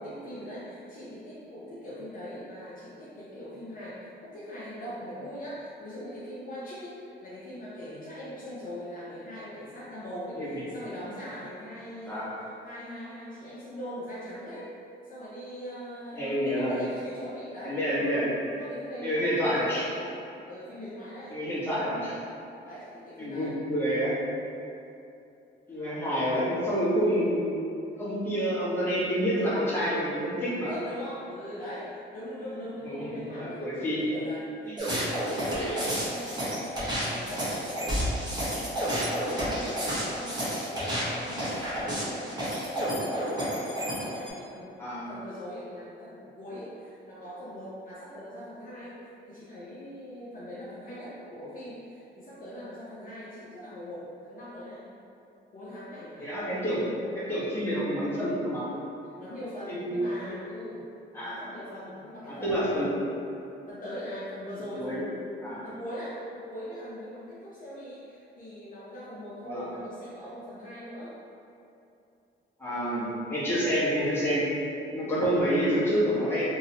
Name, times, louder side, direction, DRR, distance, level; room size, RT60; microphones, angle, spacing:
voice 1, 0.0-14.7 15.0-17.8 18.5-20.0 20.4-21.4 22.6-23.6 30.5-38.1 38.5-44.7 45.1-49.0 49.2-54.8 55.5-56.3 59.2-60.8 61.2-63.0 63.7-65.3 65.6-71.1, equal, 45° left, -9 dB, 0.7 m, -41 dB
voice 2, 16.1-16.8 17.6-18.3 19.0-19.9 21.3-22.2 23.2-24.1 25.7-27.4 27.9-30.7 32.5-34.1 34.7-34.8 35.4-35.8 44.8-45.1 56.2-58.7 59.7-60.0 60.2-60.3 61.1-61.4 62.3-62.9 64.8-65.0 65.4-65.6 69.4-69.6 72.6-74.5 74.9-76.5, equal, 10° left, -10 dB, 1.2 m, -28 dB
sound 1, 34.8-44.3, equal, 20° right, 1.1 m, -30 dB
3.1 x 2.8 x 2.9 m, 2.6 s
cardioid pair, 90°, 20 cm